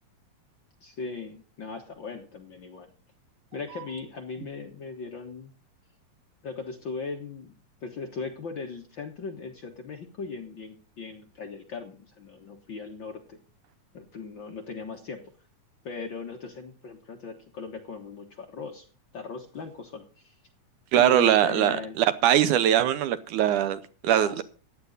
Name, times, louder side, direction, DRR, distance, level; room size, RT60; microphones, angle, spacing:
voice 1, 0.8-2.9 3.5-5.5 6.4-7.5 7.8-13.4 13.9-15.2 15.8-18.9 19.1-20.3 21.0-22.0 24.1-24.4, left 4 dB, 50° left, 3 dB, 1.6 m, -38 dB
voice 2, 20.9-24.4, right 11 dB, 75° right, 13 dB, 2.3 m, -22 dB
15.0 x 9.8 x 4.0 m, 0.37 s
omnidirectional pair, 3.7 m